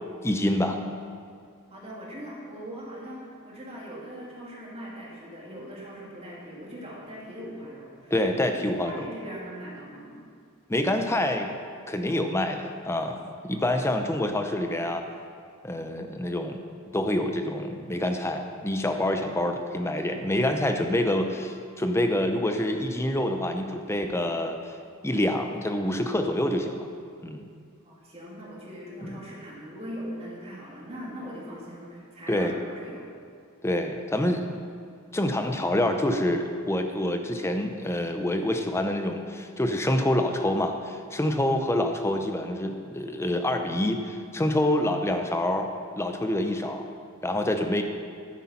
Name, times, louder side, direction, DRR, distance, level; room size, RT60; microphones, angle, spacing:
voice 1, 0.2-0.8 8.1-9.1 10.7-11.5 11.9-15.0 15.6-16.6 16.9-24.7 25.0-26.9 27.2-27.5 29.0-29.2 32.3-32.5 33.6-34.6 35.1-45.7 46.0-46.9 47.2-47.8, left 1 dB, 15° left, 5 dB, 0.7 m, -27 dB
voice 2, 1.7-8.1 8.5-8.6 8.8-10.2 27.8-33.1, equal, 30° right, -5 dB, 2.5 m, -40 dB
11.5 x 9.8 x 4.3 m, 2.3 s
head